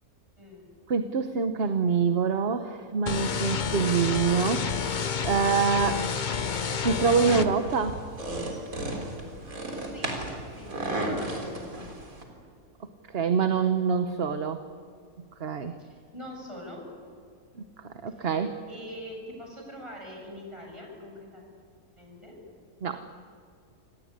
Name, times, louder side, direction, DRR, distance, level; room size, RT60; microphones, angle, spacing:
voice 1, 0.4-0.7 9.8-10.1 10.5-11.9 15.8-16.8 18.2-18.3 18.7-21.4 22.0-22.4, left 1 dB, 20° right, 0 dB, 7.7 m, -43 dB
voice 2, 0.9-4.9 5.2-6.1 6.8-8.0 13.1-14.6 15.2-15.8 17.6-18.6 22.8-23.0, right 5 dB, 45° right, 8 dB, 1.2 m, -26 dB
sound 1, 3.1-7.5, left 6 dB, 40° left, 0.8 m, -29 dB
sound 2, 7.2-12.2, right 1 dB, 70° right, 4.2 m, -34 dB
27.5 x 18.5 x 9.8 m, 2.2 s
omnidirectional pair, 1.5 m